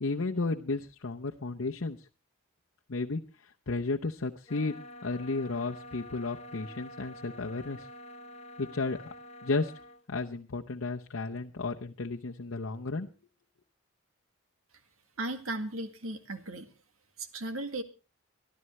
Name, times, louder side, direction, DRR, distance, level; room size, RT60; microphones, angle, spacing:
voice 1, 0.0-2.0 2.9-4.8 5.0-7.9 8.6-9.0 9.4-9.7 10.1-13.1, left 3 dB, 70° left, 1 dB, 0.8 m, -33 dB
sound 1, 4.5-10.0, left 1 dB, 30° left, 1.0 m, -47 dB
voice 2, 15.2-16.7 17.2-17.8, right 2 dB, 90° right, 8 dB, 2.0 m, -36 dB
24.0 x 12.5 x 3.2 m, 0.31 s
head